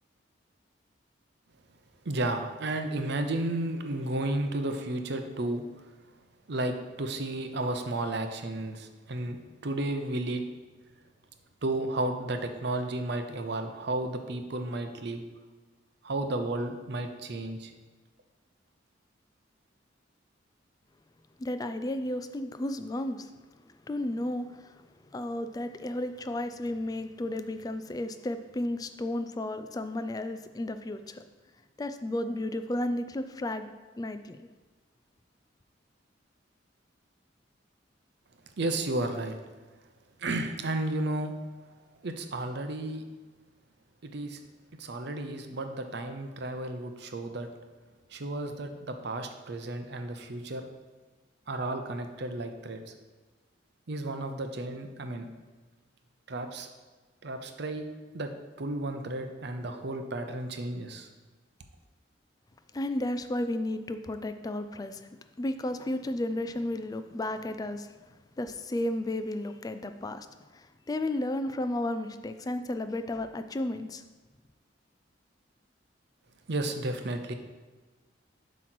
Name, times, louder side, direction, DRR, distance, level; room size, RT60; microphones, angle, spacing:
voice 1, 2.0-5.6 6.5-10.4 11.6-15.2 16.0-17.7 38.6-39.4 40.2-41.3 42.0-43.0 44.0-44.4 44.8-47.5 48.1-50.7 51.5-52.8 53.9-55.3 56.3-56.7 57.2-57.9 58.1-58.3 58.6-61.1 76.5-77.3, right 2 dB, 60° right, 6 dB, 0.6 m, -33 dB
voice 2, 21.4-23.3 23.9-24.8 25.1-31.2 31.8-33.7 34.0-34.5 62.7-65.1 65.4-70.3 70.5-74.0, left 1 dB, 20° left, 9 dB, 0.3 m, -33 dB
7.8 x 3.1 x 6.0 m, 1.3 s
head